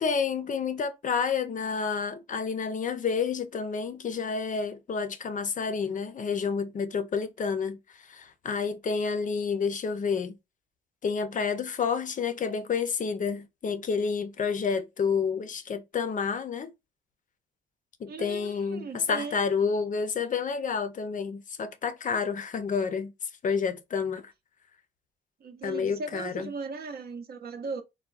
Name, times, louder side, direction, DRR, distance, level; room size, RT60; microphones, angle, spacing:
voice 1, 0.0-7.8 8.1-10.4 11.0-16.7 18.0-23.1 23.4-24.3 25.6-26.5, left 5 dB, 40° left, 0.5 m, -29 dB
voice 2, 18.1-19.4 25.4-27.8, right 3 dB, 50° right, 0.6 m, -37 dB
3.5 x 2.2 x 2.4 m
cardioid pair, 90°, 20 cm